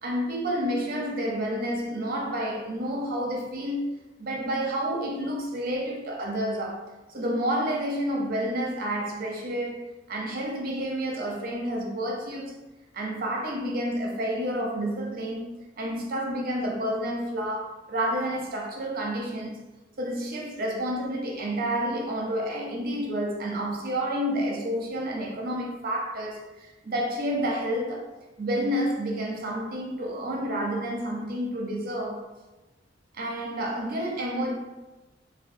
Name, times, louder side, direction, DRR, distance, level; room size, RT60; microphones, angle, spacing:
voice 1, 0.0-6.8 7.1-12.5 12.9-19.6 20.0-28.1 28.4-32.3 33.1-34.5, equal, 50° right, 0.6 m, -30 dB
3.3 x 2.2 x 2.6 m
head